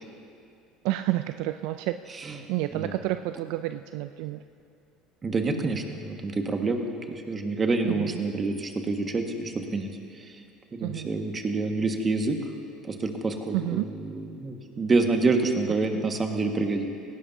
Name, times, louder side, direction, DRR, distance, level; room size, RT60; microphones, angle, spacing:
voice 1, 0.8-2.2 2.5-4.4 7.8-8.1 10.8-11.1 13.5-13.9 15.9-16.0, right 15 dB, 70° right, 10 dB, 0.4 m, -30 dB
voice 2, 5.2-9.9 10.7-12.4 12.9-13.8 14.1-16.9, right 3 dB, 30° right, 3 dB, 1.7 m, -27 dB
18.5 x 17.0 x 2.8 m, 2.4 s
hypercardioid pair, 80°, 0 cm